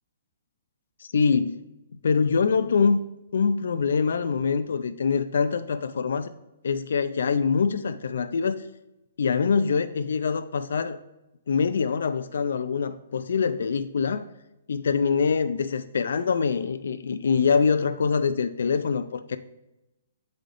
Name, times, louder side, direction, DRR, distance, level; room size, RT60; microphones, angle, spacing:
voice 1, 1.0-1.6 2.0-3.0 3.3-6.3 6.6-8.7 9.2-11.0 11.5-14.2 14.7-19.4, left 5 dB, 70° left, 10 dB, 0.3 m, -24 dB
8.2 x 3.9 x 3.3 m, 0.93 s
hypercardioid pair, 175°, 0 cm